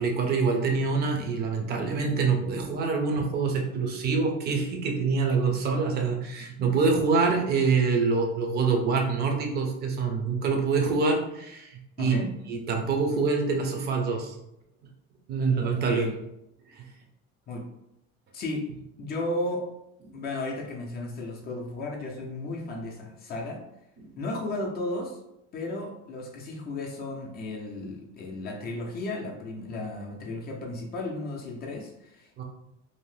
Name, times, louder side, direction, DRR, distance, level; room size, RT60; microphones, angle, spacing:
voice 1, 0.0-12.2 12.5-14.4 15.3-16.0 16.7-16.8 24.0-24.1 32.4-32.5, right 4 dB, 35° right, 2 dB, 0.5 m, -25 dB
voice 2, 12.0-12.3 15.9-16.1 17.5-17.7 18.3-18.7 19.0-19.7 20.1-23.6 24.2-25.2 25.5-32.4, left 2 dB, 30° left, -1 dB, 0.4 m, -34 dB
2.7 x 2.0 x 3.1 m, 0.84 s
cardioid pair, 150°, 30 cm